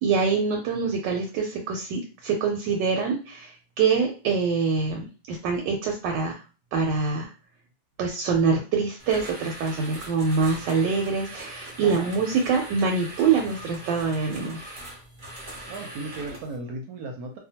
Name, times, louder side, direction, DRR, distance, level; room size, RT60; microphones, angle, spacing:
voice 1, 0.0-6.4 6.7-7.3 8.0-14.6, right 5 dB, 90° right, 1 dB, 1.2 m, -25 dB
sound 1, 9.0-16.6, right 1 dB, 45° right, 0.7 m, -41 dB
voice 2, 15.7-17.4, right 2 dB, 70° right, 3 dB, 0.9 m, -35 dB
2.8 x 2.2 x 2.7 m, 0.33 s
omnidirectional pair, 1.9 m